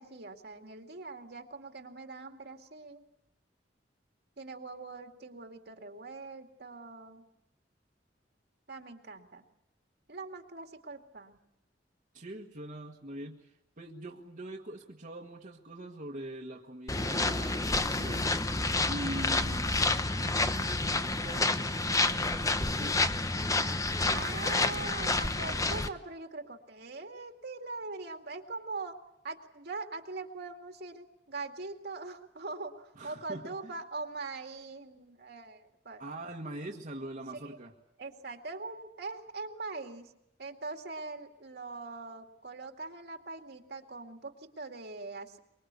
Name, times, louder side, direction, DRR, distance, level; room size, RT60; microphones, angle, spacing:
voice 1, 0.0-3.0 4.4-7.2 8.7-9.4 10.1-11.4 24.1-29.0 29.2-36.0 37.4-37.6 38.0-40.1 40.4-45.4, right 3 dB, 65° right, 4 dB, 2.3 m, -42 dB
voice 2, 12.1-18.4 18.9-19.7 20.1-23.3 32.9-33.7 36.0-37.7, right 1 dB, 50° right, -1 dB, 1.7 m, -43 dB
sound 1, 16.9-25.9, left 2 dB, 20° left, 0.9 m, -29 dB
24.5 x 22.0 x 8.3 m, 0.84 s
head